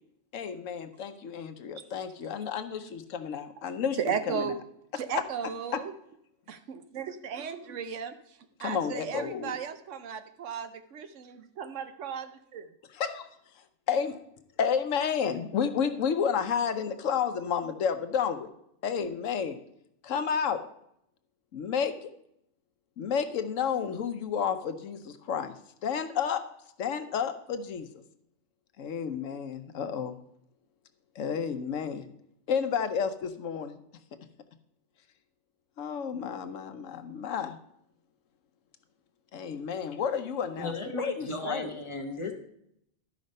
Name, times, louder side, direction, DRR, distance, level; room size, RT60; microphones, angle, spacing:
voice 1, 0.3-4.5 5.7-5.8 8.6-9.6 12.9-13.3 13.9-14.2 14.6-18.5 18.8-19.6 20.0-20.6 21.5-22.1 23.0-25.5 25.8-26.4 26.8-28.0 28.8-30.2 31.1-32.1 32.5-33.8 35.8-37.6 39.3-41.7, left 7 dB, 80° left, 9 dB, 1.1 m, -31 dB
voice 2, 4.0-4.6 4.9-5.9 6.5-12.7, right 7 dB, 75° right, 10 dB, 1.1 m, -35 dB
voice 3, 40.6-42.3, left 2 dB, 25° left, 3 dB, 1.2 m, -35 dB
12.0 x 5.1 x 5.3 m, 0.74 s
omnidirectional pair, 1.3 m